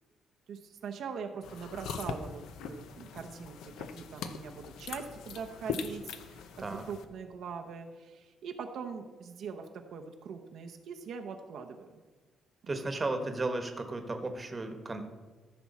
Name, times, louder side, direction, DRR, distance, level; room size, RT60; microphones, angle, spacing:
voice 1, 0.5-12.0 12.6-12.8, right 6 dB, 65° right, 4 dB, 0.8 m, -42 dB
sound 1, 1.4-7.0, left 6 dB, 90° left, 0.7 m, -41 dB
voice 2, 12.7-15.0, right 2 dB, 20° right, 6 dB, 1.1 m, -34 dB
14.0 x 6.1 x 4.2 m, 1.3 s
cardioid pair, 135°, 0 cm